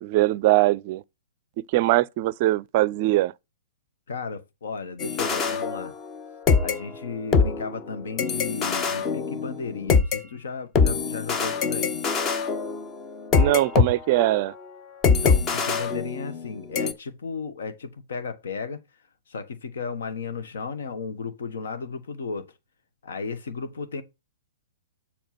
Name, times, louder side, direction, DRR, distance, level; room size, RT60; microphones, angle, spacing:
voice 1, 0.0-1.0 1.7-3.3 13.4-14.5, right 17 dB, 45° right, 0.4 m, -21 dB
voice 2, 4.1-5.9 6.6-12.0 15.1-18.8 19.3-22.5 23.0-24.0, left 5 dB, 65° left, 1.3 m, -34 dB
sound 1, 5.0-6.2 6.5-10.2 10.8-13.9 14.2-14.4 15.0-16.5 16.8-16.9, left 5 dB, 25° left, 1.0 m, -23 dB
7.2 x 4.3 x 5.9 m
figure-of-eight pair, 115°, 0 cm